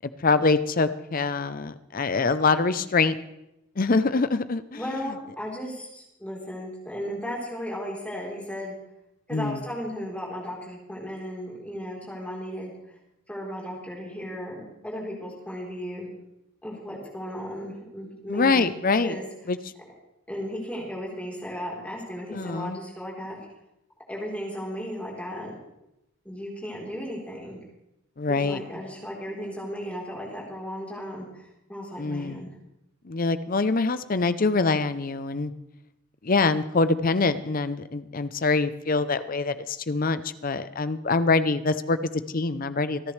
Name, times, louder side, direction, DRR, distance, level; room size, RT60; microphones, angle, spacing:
voice 1, 0.0-3.2 3.8-5.1 9.3-9.6 18.3-19.2 19.5-19.6 22.3-22.8 28.2-28.6 32.0-32.5 33.0-35.5 36.2-43.0, left 3 dB, 40° left, 12 dB, 0.6 m, -24 dB
voice 2, 4.8-8.7 9.3-13.0 13.3-16.1 16.6-18.7 19.0-19.3 20.3-23.4 24.1-25.6 26.2-27.6 28.3-32.5, equal, 5° left, -3 dB, 3.9 m, -35 dB
27.0 x 10.5 x 3.3 m, 0.88 s
head